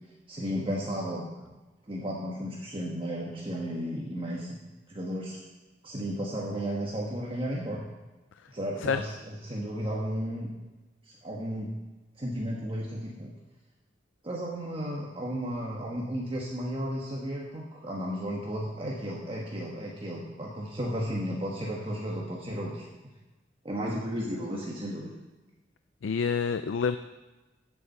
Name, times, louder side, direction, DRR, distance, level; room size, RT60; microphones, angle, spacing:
voice 1, 0.3-1.3 1.9-4.6 4.9-5.4 5.8-7.8 8.5-10.5 11.2-11.7 12.2-13.3 14.2-22.8 23.6-25.1, equal, 30° right, -3 dB, 1.2 m, -33 dB
voice 2, 26.0-27.0, left 6 dB, 90° left, 10 dB, 0.4 m, -27 dB
8.5 x 7.0 x 7.8 m, 1.1 s
head